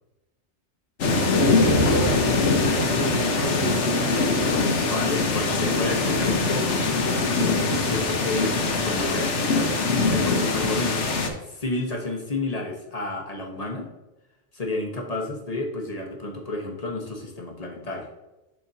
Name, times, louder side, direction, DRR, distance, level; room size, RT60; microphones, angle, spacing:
sound 1, 1.0-11.3, left 3 dB, 70° left, 1.3 m, -22 dB
voice 1, 1.4-4.3, right 5 dB, 70° right, 7 dB, 1.0 m, -31 dB
voice 2, 4.8-6.8 7.4-11.1 11.5-13.9 14.5-18.1, left 2 dB, 35° left, 1 dB, 1.1 m, -31 dB
11.5 x 4.5 x 2.7 m, 1.0 s
omnidirectional pair, 1.3 m